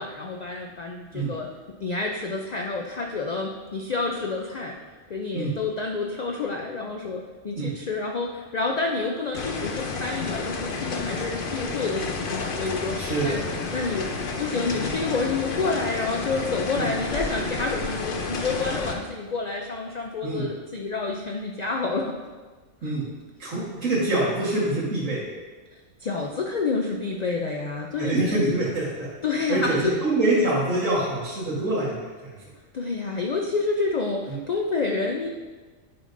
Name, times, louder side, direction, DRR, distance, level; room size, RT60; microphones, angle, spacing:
voice 1, 0.0-1.5 1.8-4.8 5.1-13.0 13.2-13.4 13.7-22.1 22.8-22.9 26.0-28.4 29.2-30.0 32.7-35.3, left 3 dB, 85° left, 1 dB, 0.3 m, -29 dB
sound 1, 9.3-19.0, left 4 dB, 50° left, 0.7 m, -31 dB
voice 2, 13.0-13.4 16.8-16.9 20.2-20.5 22.8-23.0 23.4-25.2 28.0-29.1 29.5-32.4 34.3-34.4, right 2 dB, 75° right, -8 dB, 1.9 m, -25 dB
9.6 x 5.1 x 2.6 m, 1.4 s
omnidirectional pair, 1.4 m